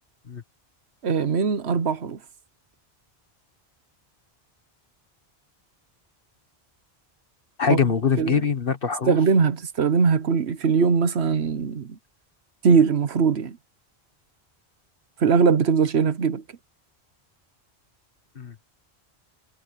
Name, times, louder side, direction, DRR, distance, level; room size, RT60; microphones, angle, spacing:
voice 1, 1.0-2.2 7.7-7.8 8.2-8.4 9.1-11.9 12.6-13.6 15.2-16.4, right 5 dB, 85° right, 1.3 m, -21 dB
voice 2, 7.6-9.2 18.3-18.5, left 6 dB, 60° left, 1.7 m, -23 dB
omnidirectional pair, 1.1 m